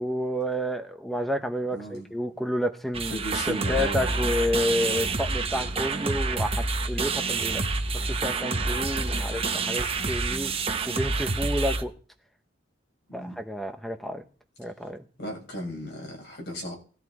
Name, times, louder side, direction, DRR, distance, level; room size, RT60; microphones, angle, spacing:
voice 1, 0.0-7.6 8.1-10.5 10.9-11.9 13.1-14.2 14.6-15.0, left 1 dB, ahead, 0.9 m, -30 dB
voice 2, 1.7-2.1 3.1-4.1 5.9-6.2 10.3-10.6 13.1-13.4 15.2-16.8, equal, 60° left, 6.8 m, -36 dB
sound 1, 2.9-11.8, right 3 dB, 30° right, 1.3 m, -28 dB
18.5 x 13.5 x 4.9 m
head